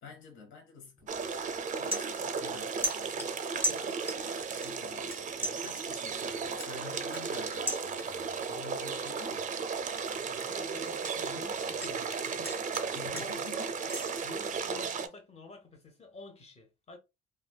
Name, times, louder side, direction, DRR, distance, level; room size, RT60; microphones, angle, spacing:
voice 1, 0.0-3.4 3.7-9.5 12.9-13.8, left 5 dB, 80° left, 0.9 m, -50 dB
sound 1, 1.0-1.2 1.6-2.6 2.8-4.3 4.6-5.2 5.4-8.3 8.7-9.1 9.5-11.9 12.2-14.1, right 1 dB, 10° left, 1.3 m, -37 dB
sound 2, 1.1-15.1, right 5 dB, 40° right, 0.4 m, -35 dB
voice 2, 10.2-13.3 14.2-17.0, left 3 dB, 30° left, 1.0 m, -50 dB
3.1 x 2.3 x 2.2 m
cardioid pair, 90°, 20 cm